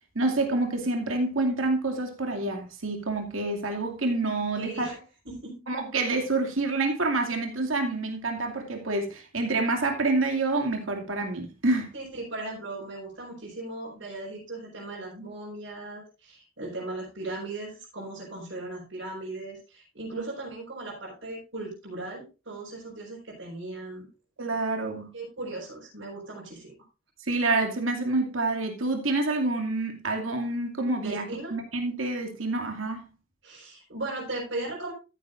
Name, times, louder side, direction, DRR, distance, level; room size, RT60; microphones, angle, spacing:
voice 1, 0.1-4.9 5.7-11.9 20.1-20.3 24.4-25.1 27.2-31.3 31.5-33.0, right 2 dB, 85° right, 2.4 m, -27 dB
voice 2, 4.5-4.9 5.2-5.6 11.9-24.1 25.1-26.7 31.0-31.5 33.4-34.9, right 2 dB, 70° right, 4.8 m, -37 dB
14.0 x 9.5 x 2.6 m
head